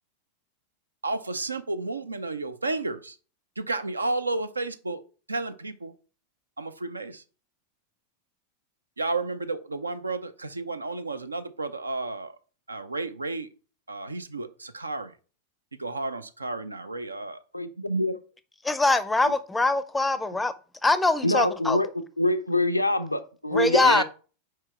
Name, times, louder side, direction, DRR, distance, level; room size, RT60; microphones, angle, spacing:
voice 1, 1.0-3.2 3.6-5.0 5.3-5.9 6.6-7.2 9.0-12.4 12.7-13.5 13.9-15.2 15.7-17.4 23.8-24.0, right 3 dB, 80° right, 0.5 m, -32 dB
voice 2, 17.5-18.2 21.2-21.9 22.2-24.0, left 1 dB, 85° left, 0.5 m, -25 dB
voice 3, 18.6-20.5 20.8-21.8 23.5-24.0, left 2 dB, 10° left, 0.5 m, -23 dB
4.9 x 4.7 x 4.3 m
figure-of-eight pair, 90°, 0 cm